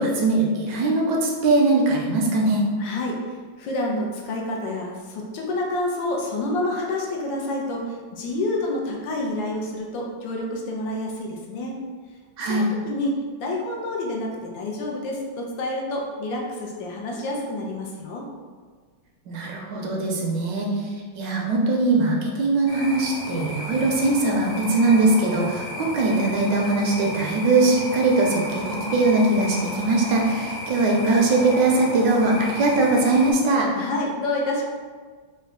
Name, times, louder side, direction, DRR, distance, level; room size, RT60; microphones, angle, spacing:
voice 1, 0.0-2.6 12.4-12.7 19.3-33.7, right 2 dB, 75° right, -1 dB, 1.1 m, -21 dB
voice 2, 2.8-11.8 12.5-18.3 33.7-34.6, left 1 dB, 75° left, -1 dB, 1.3 m, -28 dB
sound 1, 22.7-33.3, left 1 dB, 55° left, 1.0 m, -34 dB
3.9 x 2.2 x 3.6 m, 1.6 s
omnidirectional pair, 2.1 m